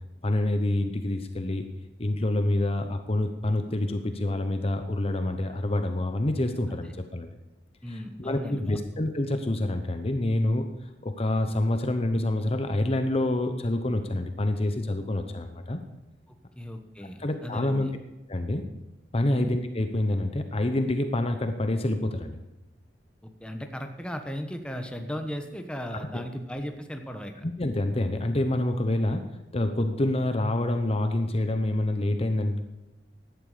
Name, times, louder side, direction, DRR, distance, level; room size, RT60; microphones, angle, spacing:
voice 1, 0.2-1.7 2.0-7.3 7.9-15.8 17.2-17.9 18.3-18.6 19.1-22.4 25.9-26.2 27.4-32.6, left 1 dB, 35° left, 7 dB, 0.9 m, -27 dB
voice 2, 7.8-8.8 16.3-18.0 19.3-19.5 23.2-27.3, equal, 5° left, 5 dB, 1.2 m, -36 dB
16.0 x 11.5 x 5.1 m, 1.0 s
head